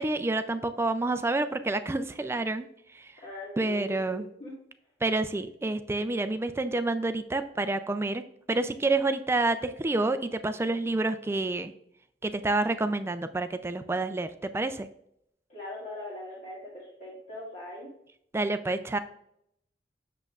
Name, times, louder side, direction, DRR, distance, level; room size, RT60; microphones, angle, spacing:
voice 1, 0.0-2.7 2.9-3.1 3.6-4.3 5.0-8.2 8.5-11.7 12.2-14.9 18.3-19.0, right 2 dB, 15° right, 10 dB, 0.3 m, -28 dB
voice 2, 3.2-4.6 15.5-17.9, left 2 dB, 40° left, -7 dB, 1.8 m, -41 dB
8.2 x 6.6 x 2.4 m, 0.73 s
head